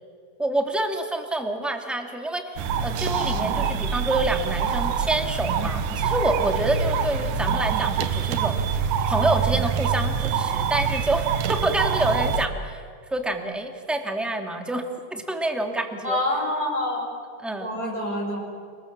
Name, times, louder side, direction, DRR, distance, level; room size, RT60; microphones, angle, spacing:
voice 1, 0.4-8.6 9.1-12.8 13.1-14.8 15.1-16.2 17.4-17.7, right 2 dB, ahead, 4 dB, 1.4 m, -27 dB
sound 1, 2.6-12.5, right 7 dB, 75° right, 2.5 m, -25 dB
voice 2, 16.0-17.1 17.6-18.4, left 1 dB, 25° right, -3 dB, 6.3 m, -26 dB
30.0 x 21.0 x 7.4 m, 2.2 s
omnidirectional pair, 3.9 m